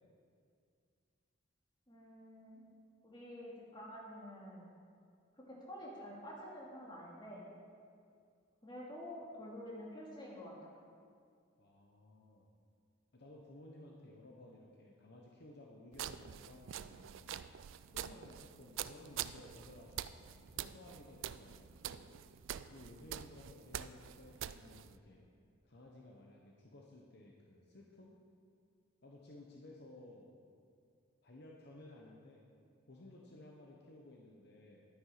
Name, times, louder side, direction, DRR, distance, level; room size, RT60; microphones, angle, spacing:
voice 1, 1.9-2.6 3.0-4.7 5.4-7.5 8.6-10.8, equal, 20° left, -4 dB, 2.2 m, -49 dB
voice 2, 11.6-12.5 13.1-17.3 17.9-22.1 22.7-25.3 25.6-28.2 29.0-30.3 31.2-32.4 32.9-34.8, left 1 dB, 50° left, -1 dB, 0.9 m, -56 dB
sound 1, 15.9-25.0, right 10 dB, 70° right, 0.3 m, -46 dB
11.5 x 9.5 x 4.9 m, 2.3 s
head